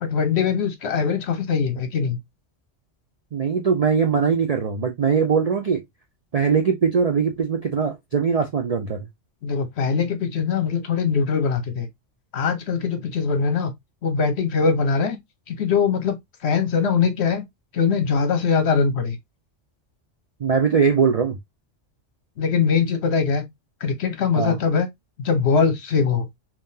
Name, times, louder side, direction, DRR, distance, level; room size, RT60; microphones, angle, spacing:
voice 1, 0.0-2.2 9.4-11.9 12.3-13.7 14.0-15.2 15.5-17.4 17.7-19.2 22.4-23.4 23.8-24.9 25.2-26.3, left 5 dB, 60° left, 1.1 m, -22 dB
voice 2, 3.3-5.8 6.3-9.1 20.4-21.4 24.4-24.6, right 6 dB, 55° right, 0.4 m, -21 dB
3.6 x 2.9 x 2.7 m
omnidirectional pair, 1.2 m